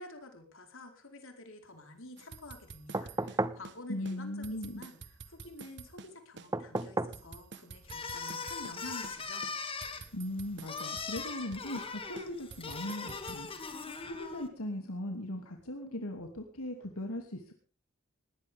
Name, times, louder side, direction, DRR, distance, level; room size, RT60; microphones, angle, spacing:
voice 1, 0.0-9.5, left 2 dB, 65° left, 4 dB, 4.5 m, -49 dB
sound 1, 2.2-3.8 4.1-4.2 4.4-6.5 6.8-8.8 9.0-9.2 9.4-11.9 12.2-13.4, right 4 dB, 55° right, 1.3 m, -49 dB
sound 2, 2.9-3.7 6.5-7.2 8.8-8.9, right 2 dB, 15° right, 0.8 m, -33 dB
voice 2, 3.9-4.8 10.1-13.5 13.8-17.6, left 1 dB, 80° left, 3 dB, 2.8 m, -39 dB
sound 3, 7.9-14.5, left 4 dB, 25° left, 2.4 m, -40 dB
20.5 x 18.5 x 3.6 m, 0.39 s
head